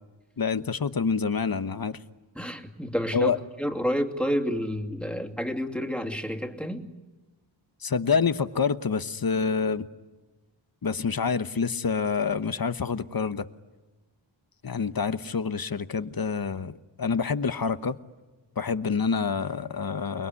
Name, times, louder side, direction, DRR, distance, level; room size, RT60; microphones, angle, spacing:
voice 1, 0.4-2.0 3.1-3.4 7.8-9.8 10.8-13.4 14.6-18.0 18.6-20.3, left 5 dB, 50° left, 12 dB, 1.1 m, -27 dB
voice 2, 2.3-3.3 3.6-6.9, equal, ahead, 4 dB, 2.7 m, -29 dB
29.0 x 21.0 x 9.7 m, 1.2 s
wide cardioid pair, 105°, 46 cm